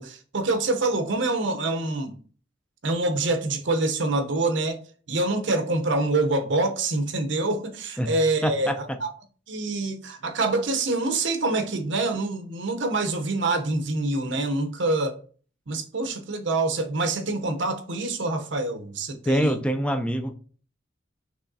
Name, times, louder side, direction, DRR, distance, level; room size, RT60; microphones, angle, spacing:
voice 1, 0.0-2.2 2.8-4.8 5.1-9.1 9.5-15.2 15.7-19.6, right 2 dB, 70° right, 0.7 m, -26 dB
voice 2, 8.4-9.0 19.3-20.3, equal, 5° left, 0.4 m, -25 dB
6.3 x 3.1 x 2.7 m
head